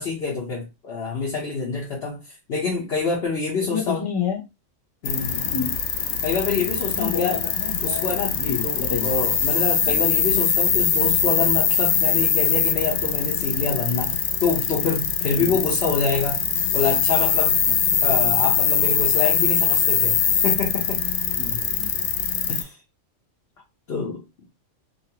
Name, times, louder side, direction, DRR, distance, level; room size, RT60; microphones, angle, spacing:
voice 1, 0.0-2.2 2.5-4.0 5.0-5.5 6.2-7.4 7.8-16.4 16.7-17.6 18.0-20.2 20.4-21.0 22.5-22.8 23.9-24.4, left 4 dB, 55° left, 1.2 m, -26 dB
voice 2, 3.7-4.4 5.4-5.8 6.9-9.1 9.9-10.0 15.4-15.6 17.7-17.8 21.4-21.9, left 6 dB, 30° left, 0.5 m, -29 dB
sound 1, 5.0-22.6, left 7 dB, 90° left, 1.0 m, -22 dB
2.8 x 2.8 x 2.8 m
omnidirectional pair, 1.4 m